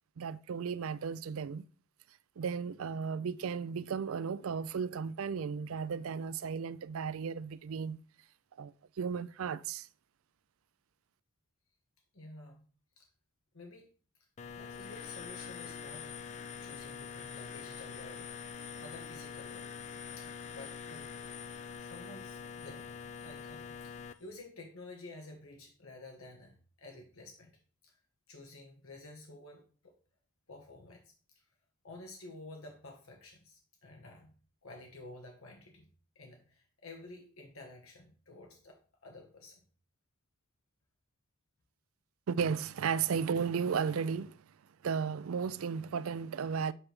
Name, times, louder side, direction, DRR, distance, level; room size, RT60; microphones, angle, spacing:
voice 1, 0.2-1.6 2.4-8.0 8.6-9.9 42.3-44.4 44.8-46.7, right 6 dB, 65° right, 0.4 m, -34 dB
voice 2, 12.1-12.7 13.0-13.1 13.5-13.9 14.5-16.1 16.6-18.3 18.8-19.7 20.2-21.1 21.8-22.9 23.2-27.5 27.8-28.0 28.3-29.9 30.5-31.4 31.8-34.3 34.6-35.9 36.1-39.6, left 2 dB, 65° left, 1.3 m, -51 dB
sound 1, 14.4-24.1, left 6 dB, 35° left, 0.4 m, -44 dB
7.7 x 3.3 x 6.0 m
head